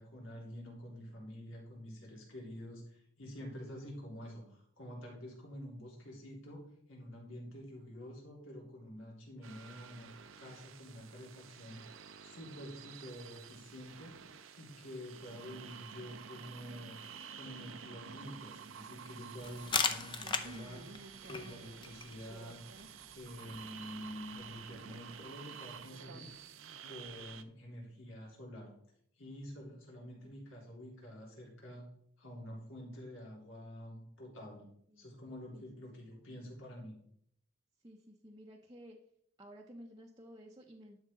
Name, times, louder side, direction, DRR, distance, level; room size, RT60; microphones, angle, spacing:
voice 1, 0.0-6.6 6.9-10.1 10.4-11.8 12.2-14.2 14.6-17.0 17.3-22.6 23.1-26.3 26.8-28.7 29.2-31.9 32.2-34.7 35.0-37.0, equal, 80° left, -2 dB, 3.5 m, -48 dB
sound 1, 9.4-27.4, right 7 dB, 80° right, 0.7 m, -51 dB
sound 2, 19.4-24.9, left 5 dB, 25° left, 0.6 m, -40 dB
voice 2, 37.8-39.0 39.4-41.0, equal, 20° right, -1 dB, 0.7 m, -54 dB
11.5 x 6.3 x 3.7 m, 0.67 s
head